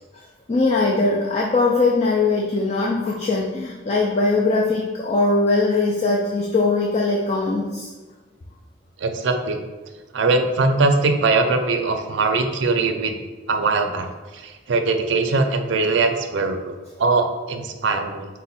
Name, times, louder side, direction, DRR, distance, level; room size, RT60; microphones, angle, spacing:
voice 1, 0.5-7.9, left 3 dB, 35° left, -2 dB, 0.4 m, -21 dB
voice 2, 9.0-9.6 10.1-13.2 13.5-14.1 14.3-18.3, right 3 dB, 70° right, 5 dB, 0.4 m, -21 dB
4.4 x 2.1 x 4.0 m, 1.3 s
head